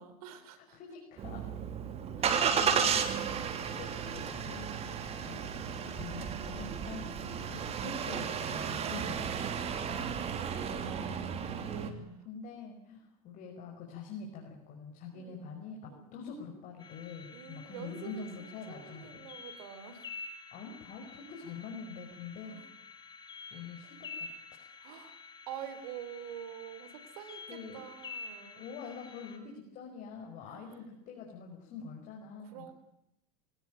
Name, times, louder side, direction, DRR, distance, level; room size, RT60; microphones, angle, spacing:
voice 1, 0.0-0.8 5.2-6.2 6.8-7.4 9.8-11.7 15.1-15.5 15.8-16.1 17.3-20.0 22.5-22.7 24.8-25.2 25.5-28.6 30.4-30.8 32.4-32.7, right 9 dB, 75° right, 11 dB, 3.9 m, -47 dB
voice 2, 0.6-1.5 2.2-3.2 3.5-5.6 5.8-9.7 11.5-19.3 20.5-22.6 23.5-24.3 27.5-27.8 28.5-32.7, left 5 dB, 45° left, 1 dB, 5.9 m, -45 dB
Engine starting, 1.2-11.9, right 7 dB, 35° right, 3.1 m, -33 dB
sound 1, 16.8-29.4, left 4 dB, 25° left, 5.0 m, -49 dB
24.0 x 17.5 x 9.2 m, 0.82 s
supercardioid pair, 115°, 19 cm